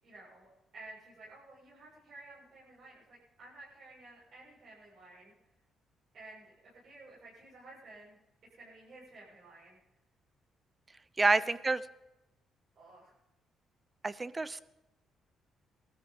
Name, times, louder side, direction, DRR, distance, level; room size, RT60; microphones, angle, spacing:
voice 1, 0.0-5.3 6.1-8.2 8.5-9.8 11.2-11.7 12.7-13.1, right 2 dB, 65° right, -8 dB, 7.2 m, -53 dB
voice 2, 11.2-11.8 14.0-14.6, right 3 dB, 25° right, 17 dB, 0.7 m, -28 dB
19.0 x 13.5 x 5.5 m, 0.95 s
cardioid pair, 90°, 0 cm